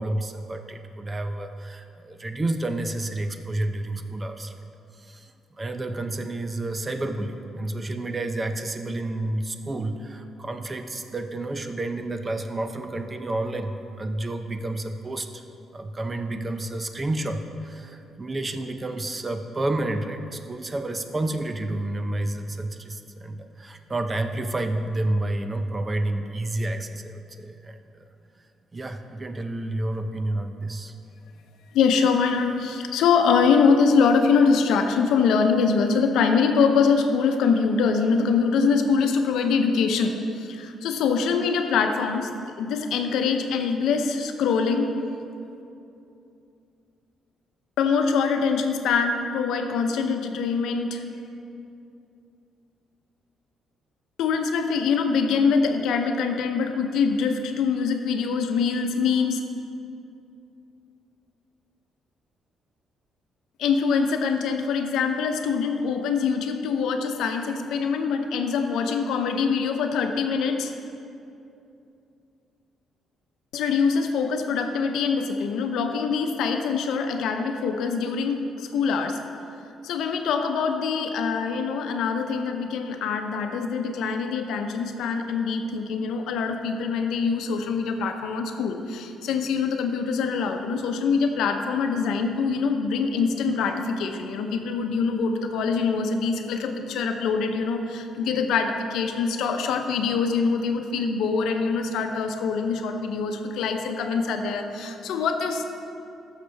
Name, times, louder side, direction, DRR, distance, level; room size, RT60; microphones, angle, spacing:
voice 1, 0.0-4.6 5.0-15.4 15.7-27.8 28.7-30.9, right 2 dB, 25° right, 7 dB, 0.6 m, -30 dB
voice 2, 31.7-42.3 42.6-44.9 47.8-51.3 54.2-59.4 63.6-70.7 73.5-79.2 79.8-105.6, left 5 dB, 85° left, 5 dB, 0.7 m, -24 dB
13.0 x 6.6 x 3.4 m, 2.7 s
cardioid pair, 90°, 0 cm